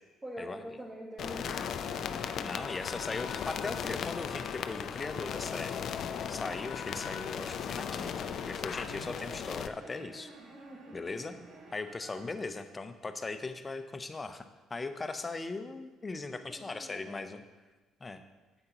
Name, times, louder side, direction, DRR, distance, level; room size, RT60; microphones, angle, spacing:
voice 1, 0.2-2.5 10.7-11.0 16.5-17.3, equal, 15° right, -6 dB, 1.8 m, -45 dB
sound 1, 1.2-9.7, left 8 dB, 60° left, 0.4 m, -37 dB
sound 2, 1.8-2.4 3.6-3.8 4.4-4.5 5.1-5.3 6.7-12.3, right 2 dB, 55° right, 1.3 m, -51 dB
voice 2, 2.4-5.8 6.3-10.3 10.9-11.4 11.7-17.4 18.0-18.2, left 3 dB, 25° left, 9 dB, 0.7 m, -39 dB
9.5 x 7.8 x 3.0 m, 1.2 s
supercardioid pair, 70°, 0 cm